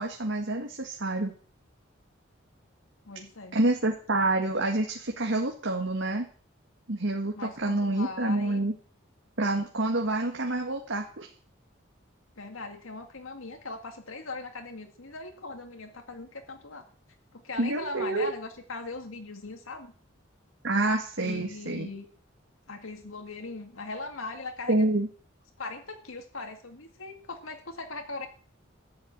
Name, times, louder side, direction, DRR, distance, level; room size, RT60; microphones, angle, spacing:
voice 1, 0.0-1.3 3.5-6.3 6.9-8.7 9.4-11.3 17.6-18.3 20.6-21.9 24.7-25.1, right 2 dB, 70° right, 1 dB, 1.9 m, -27 dB
voice 2, 3.1-3.6 7.4-8.6 12.4-16.8 17.3-19.9 21.2-22.1 22.7-24.9 25.6-28.3, left 3 dB, 85° left, 5 dB, 2.0 m, -39 dB
14.0 x 7.2 x 9.6 m, 0.44 s
head